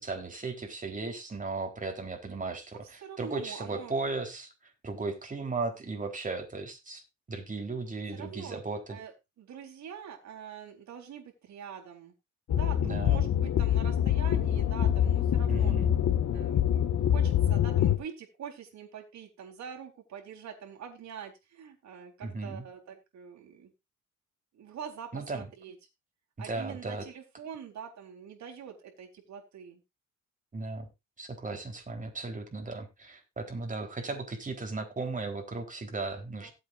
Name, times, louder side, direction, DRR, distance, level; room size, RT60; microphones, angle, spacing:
voice 1, 0.0-4.5 4.8-7.0 7.3-9.0 12.8-13.2 15.5-16.0 22.2-22.6 25.1-25.5 26.4-27.0 30.5-30.9 31.2-36.5, right 3 dB, 25° right, 3 dB, 3.9 m, -36 dB
voice 2, 3.0-3.9 8.1-8.6 8.9-9.1 9.4-12.1 12.5-15.7 16.3-23.7 24.5-25.8 26.4-29.8 36.4-36.5, right 7 dB, 65° right, 1 dB, 3.9 m, -44 dB
sound 1, 12.5-18.0, left 10 dB, 70° left, 1.8 m, -25 dB
18.0 x 8.0 x 2.6 m, 0.24 s
cardioid pair, 90°, 30 cm